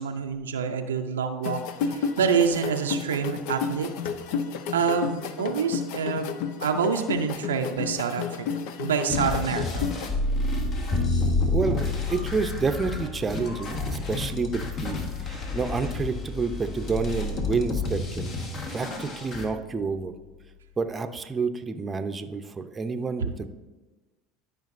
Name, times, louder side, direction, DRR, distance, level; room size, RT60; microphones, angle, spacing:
voice 1, 0.0-3.9 4.7-8.5 8.8-9.9, right 6 dB, 90° right, 6 dB, 0.5 m, -27 dB
sound 1, 1.4-10.1, left 6 dB, 65° left, 0.5 m, -32 dB
sound 2, 9.1-19.5, left 2 dB, 45° left, 1.3 m, -31 dB
Bowed string instrument, 10.9-17.1, left 4 dB, 25° left, 1.8 m, -31 dB
voice 2, 11.5-18.3 18.7-20.1 20.8-23.5, right 4 dB, 25° right, 8 dB, 0.6 m, -29 dB
12.0 x 5.1 x 2.6 m, 1.2 s
hypercardioid pair, 80°, 0 cm